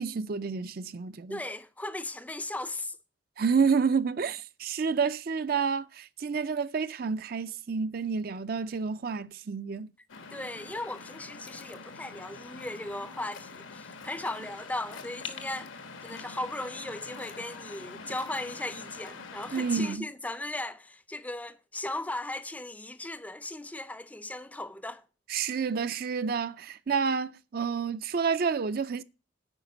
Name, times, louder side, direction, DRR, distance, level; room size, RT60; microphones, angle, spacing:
voice 1, 0.0-1.4 3.4-9.9 19.5-20.1 25.3-29.0, right 5 dB, 50° right, 0.4 m, -29 dB
voice 2, 1.3-3.0 10.3-15.7 16.0-25.0, left 2 dB, 10° left, 0.4 m, -37 dB
Waves surf, 10.1-20.0, left 4 dB, 85° left, 1.2 m, -44 dB
9.0 x 5.2 x 7.0 m
head